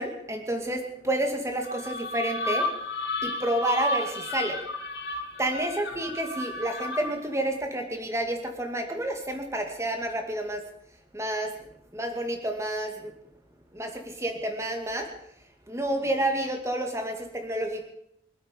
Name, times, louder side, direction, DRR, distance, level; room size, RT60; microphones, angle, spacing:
voice 1, 0.0-2.7 3.2-4.6 5.4-10.6 11.1-11.5 11.9-13.1 13.7-15.1 15.7-17.9, right 1 dB, 15° right, 4 dB, 2.4 m, -29 dB
sound 1, 1.6-7.3, left 1 dB, 65° left, 3.0 m, -32 dB
24.5 x 8.7 x 6.8 m, 0.75 s
head